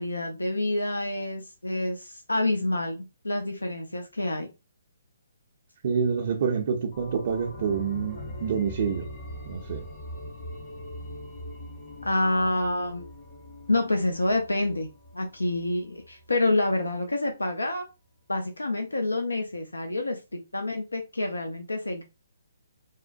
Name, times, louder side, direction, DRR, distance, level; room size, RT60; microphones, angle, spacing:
voice 1, 0.0-4.5 12.0-13.1 13.7-14.9 15.1-17.8 18.3-22.0, left 2 dB, 90° left, 0.6 m, -27 dB
voice 2, 5.8-9.1 9.5-9.9, right 6 dB, 50° right, 0.5 m, -27 dB
sound 1, 6.9-16.3 16.6-16.7, left 1 dB, 35° left, 0.9 m, -42 dB
3.5 x 2.1 x 2.5 m
figure-of-eight pair, 140°, 0 cm